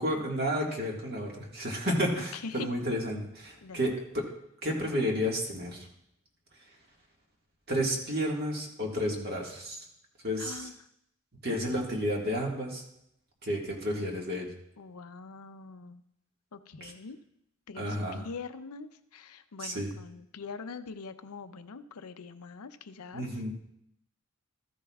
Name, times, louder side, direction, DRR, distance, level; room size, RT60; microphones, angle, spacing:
voice 1, 0.0-4.3 4.6-5.9 7.7-9.8 10.2-10.7 11.4-12.8 13.4-14.5 16.8-16.9 17.8-18.2 19.6-19.9 23.1-23.5, equal, 45° right, -1 dB, 1.8 m, -31 dB
voice 2, 2.2-2.8 3.6-3.8 10.4-10.7 14.8-16.0 16.5-17.2 17.7-23.2, left 4 dB, 90° left, 10 dB, 0.6 m, -43 dB
14.0 x 10.0 x 2.4 m, 0.77 s
head